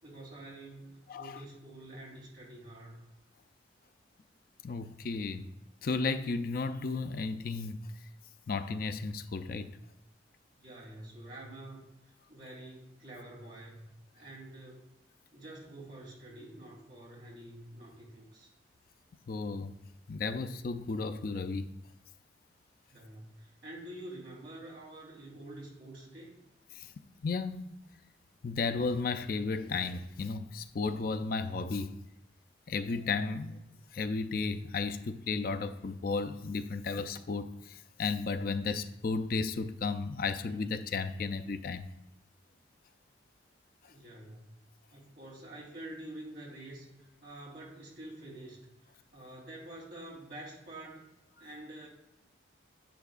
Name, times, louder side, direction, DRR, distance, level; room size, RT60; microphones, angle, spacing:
voice 1, 0.0-3.0 10.6-13.8 14.1-14.9 15.3-18.5 22.9-26.3 43.9-44.6 44.9-51.0 51.4-51.9, right 1 dB, 55° right, 3.3 m, -48 dB
voice 2, 1.1-1.4 4.6-5.4 5.8-7.8 8.5-9.7 19.3-19.7 20.1-21.7 26.7-26.9 27.2-27.7 28.4-31.9 32.7-33.6 33.9-41.9 43.8-43.9, left 4 dB, 50° left, 0.4 m, -34 dB
10.5 x 8.6 x 2.5 m
head